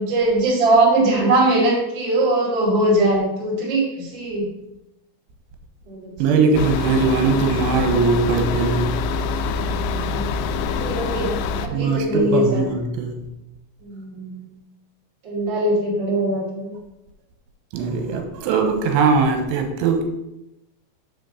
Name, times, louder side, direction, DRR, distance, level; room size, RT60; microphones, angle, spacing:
voice 1, 0.0-4.5 5.9-6.4 9.6-10.3 10.6-11.3 11.5-12.7 13.8-14.5 15.2-16.7, right 1 dB, 30° right, -6 dB, 2.3 m, -21 dB
voice 2, 6.2-9.0 11.7-13.2 17.7-20.0, right 4 dB, 80° right, 4 dB, 3.5 m, -20 dB
sound 1, 6.5-11.7, left 5 dB, 85° left, 2.4 m, -25 dB
6.8 x 5.2 x 6.5 m, 0.90 s
omnidirectional pair, 5.6 m